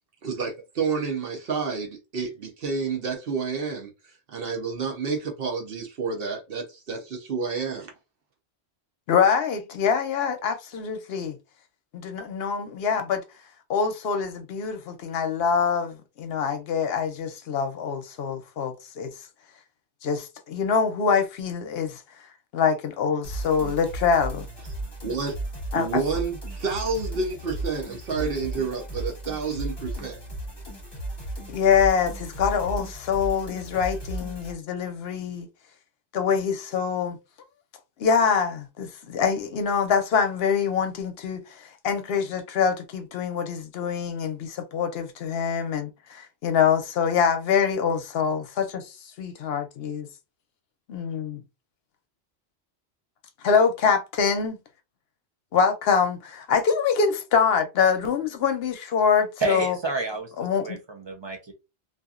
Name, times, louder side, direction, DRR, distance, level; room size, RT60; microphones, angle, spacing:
voice 1, 0.2-3.9 4.3-7.9 25.0-25.4 25.7-30.2, right 5 dB, 60° right, 0.9 m, -29 dB
voice 2, 9.1-11.4 11.9-13.2 13.7-19.1 20.0-22.0 22.5-24.5 25.7-26.0 31.5-35.5 36.1-37.2 38.0-50.1 50.9-51.4 53.4-54.6 55.5-59.8 60.4-60.8, left 6 dB, 65° left, 0.8 m, -25 dB
sound 1, 23.2-34.5, right 1 dB, 25° left, 0.9 m, -35 dB
voice 3, 59.4-61.5, right 3 dB, 35° right, 0.5 m, -30 dB
2.7 x 2.4 x 2.4 m
omnidirectional pair, 1.2 m